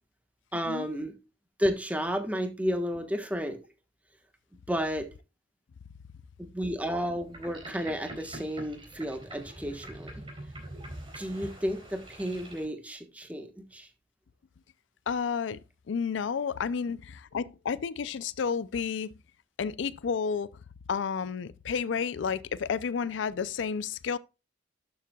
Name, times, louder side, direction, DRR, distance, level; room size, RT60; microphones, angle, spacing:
voice 1, 0.5-1.1 1.6-3.6 4.7-5.1 6.4-10.1 11.1-13.9, equal, 10° right, 1.2 m, -32 dB
Boat Water vehicle, 7.2-12.7, right 1 dB, 25° right, 4.0 m, -44 dB
voice 2, 15.1-15.6 15.9-19.1 19.6-20.5 20.9-24.2, left 6 dB, 65° left, 0.4 m, -31 dB
12.0 x 7.2 x 2.3 m
head